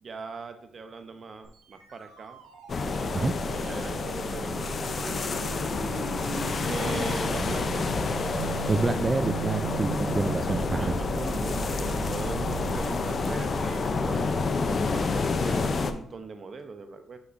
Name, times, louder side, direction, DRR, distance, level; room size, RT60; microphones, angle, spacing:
voice 1, 0.0-2.4 3.6-5.2 6.6-8.0 10.4-17.2, right 4 dB, 45° right, 8 dB, 0.8 m, -40 dB
sound 1, 1.4-12.8, right 5 dB, 90° right, 1.1 m, -38 dB
sound 2, 2.7-15.9, left 3 dB, 45° left, 0.6 m, -29 dB
voice 2, 8.7-10.9, right 3 dB, 30° right, 7 dB, 0.4 m, -27 dB
8.1 x 5.5 x 2.6 m, 0.68 s
cardioid pair, 80°, 0 cm